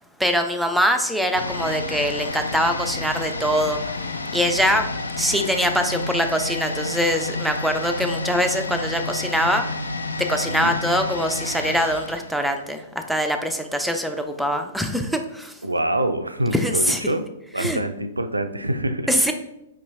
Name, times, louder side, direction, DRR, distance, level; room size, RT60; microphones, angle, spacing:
voice 1, 0.2-3.8 4.3-4.9 5.2-9.6 10.2-15.5 16.5-17.0 17.6-17.8 19.1-19.3, equal, ahead, 5 dB, 0.3 m, -23 dB
sound 1, 1.3-13.1 13.4-13.5, left 2 dB, 80° left, 0.3 m, -30 dB
voice 2, 15.6-17.2 17.5-19.3, right 1 dB, 85° right, 9 dB, 0.3 m, -25 dB
4.6 x 2.9 x 2.6 m, 0.85 s
figure-of-eight pair, 110°, 0 cm